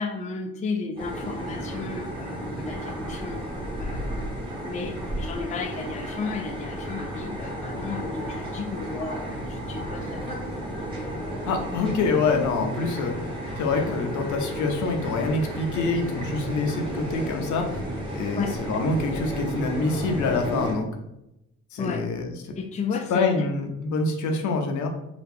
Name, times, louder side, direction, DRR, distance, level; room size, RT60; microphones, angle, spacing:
voice 1, 0.0-3.4 3.8-4.4 4.6-10.4 13.9-14.0 18.4-18.6 21.8-22.1 22.6-23.1 23.4-23.5, left 5 dB, 25° left, 5 dB, 0.4 m, -33 dB
sound 1, 1.0-20.7, right 1 dB, 15° right, 1.3 m, -33 dB
voice 2, 11.5-13.3 13.6-17.8 18.1-20.9 21.7-22.6 23.1-24.9, left 3 dB, 75° left, 3 dB, 0.7 m, -26 dB
2.9 x 2.4 x 3.5 m, 0.86 s
cardioid pair, 90°, 30 cm